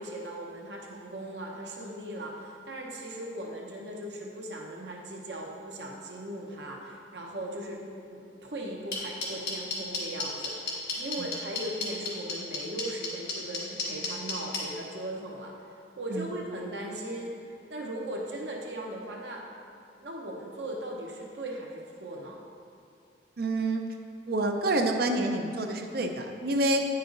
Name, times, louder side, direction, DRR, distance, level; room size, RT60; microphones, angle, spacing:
voice 1, 0.0-17.4 17.7-19.4 20.0-22.4, right 1 dB, 75° right, -1 dB, 0.9 m, -38 dB
sound 1, 8.9-14.6, left 5 dB, 65° left, 1.7 m, -31 dB
voice 2, 23.4-23.8 24.3-26.9, right 2 dB, 60° right, 4 dB, 0.6 m, -28 dB
9.5 x 5.6 x 3.9 m, 2.4 s
head